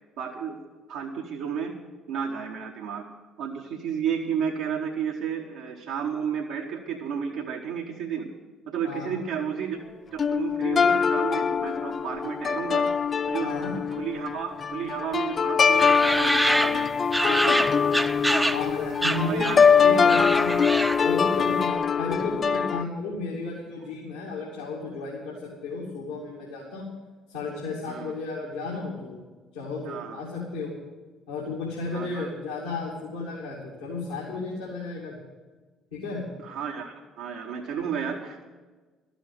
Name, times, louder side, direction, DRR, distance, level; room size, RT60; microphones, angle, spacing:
voice 1, 0.2-0.6 0.9-1.8 2.1-3.0 3.4-8.2 8.7-9.8 10.1-12.8 13.3-13.6 14.0-16.9 17.3-17.7 18.3-18.6 19.2-19.6 20.4-20.6 27.9-28.1 29.8-30.2 31.9-32.3 36.4-38.5, right 7 dB, 70° right, -1 dB, 1.1 m, -32 dB
voice 2, 8.8-9.2 13.4-13.7 18.5-19.5 19.8-20.7 21.0-26.9 27.3-29.2 29.5-30.7 31.3-35.2 35.9-36.3, left 3 dB, 80° left, -5 dB, 2.4 m, -33 dB
sound 1, 10.2-22.8, left 6 dB, 40° left, 0.3 m, -23 dB
sound 2, 15.8-18.7 19.0-19.7 20.0-21.2, right 1 dB, 5° right, 0.7 m, -26 dB
12.5 x 7.0 x 9.2 m, 1.3 s
figure-of-eight pair, 50°, 0 cm